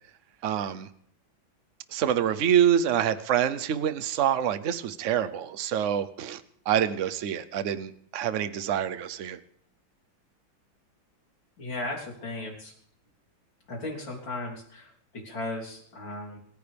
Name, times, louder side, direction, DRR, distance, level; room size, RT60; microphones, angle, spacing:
voice 1, 0.4-0.9 1.9-6.4 6.7-9.4, right 9 dB, 55° right, 12 dB, 0.8 m, -26 dB
voice 2, 11.6-12.7 13.7-16.4, left 2 dB, 70° left, -2 dB, 4.2 m, -36 dB
27.5 x 14.5 x 3.5 m, 0.68 s
omnidirectional pair, 2.1 m